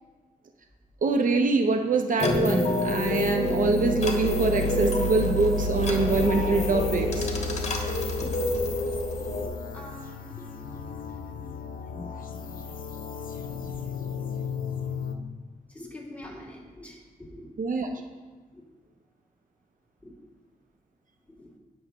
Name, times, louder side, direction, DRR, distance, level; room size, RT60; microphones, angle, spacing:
voice 1, 1.0-7.3 17.6-17.9, right 3 dB, 65° right, 4 dB, 0.7 m, -24 dB
sound 1, 2.2-9.5, left 1 dB, 50° left, 1.4 m, -27 dB
sound 2, 5.3-15.1, left 6 dB, 70° left, 0.7 m, -36 dB
voice 2, 9.7-12.8 13.6-14.1 15.7-17.5 18.5-18.7 20.0-20.1 21.3-21.5, left 1 dB, 10° left, -5 dB, 2.7 m, -46 dB
18.0 x 6.4 x 3.0 m, 1.4 s
wide cardioid pair, 115°, 15 cm